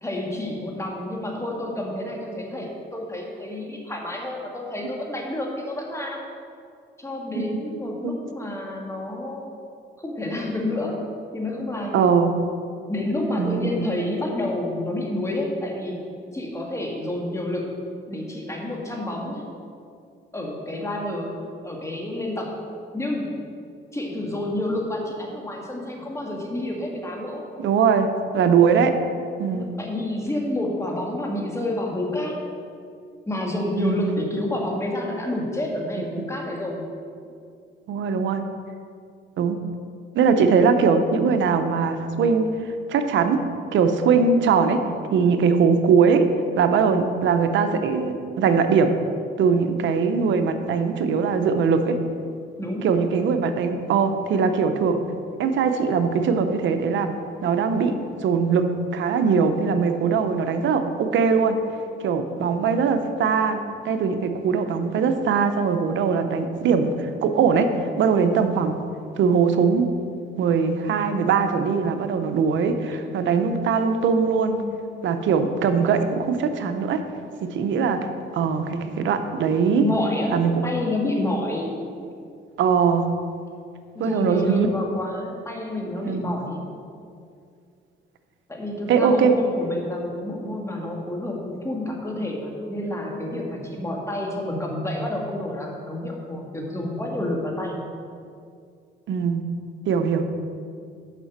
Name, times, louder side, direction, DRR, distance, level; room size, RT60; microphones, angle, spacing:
voice 1, 0.0-6.2 7.0-9.4 10.0-11.0 11.3-12.0 12.9-16.0 16.3-17.8 18.1-19.4 20.3-22.6 22.9-23.4 23.9-27.5 29.5-32.4 33.3-36.9 52.6-52.9 72.9-73.0 79.8-82.0 83.9-86.7 88.5-97.8, left 1 dB, 15° left, 0 dB, 1.7 m, -29 dB
voice 2, 11.9-12.3 13.4-13.9 27.6-29.0 29.4-29.8 33.8-34.0 37.9-38.4 39.4-39.6 40.1-42.5 42.9-43.4 43.7-44.8 45.1-46.3 46.6-48.9 49.4-52.0 52.8-55.0 55.4-57.1 57.4-57.9 58.2-61.6 62.0-63.6 63.8-67.7 68.0-68.7 69.2-69.9 70.4-74.6 75.0-77.0 77.4-78.1 78.3-79.8 80.3-80.5 82.6-83.1 84.0-84.7 86.0-86.3 88.9-89.3 99.1-99.5 99.9-100.2, right 5 dB, 75° right, 8 dB, 0.7 m, -21 dB
6.9 x 5.8 x 5.9 m, 2.3 s
cardioid pair, 90°, 20 cm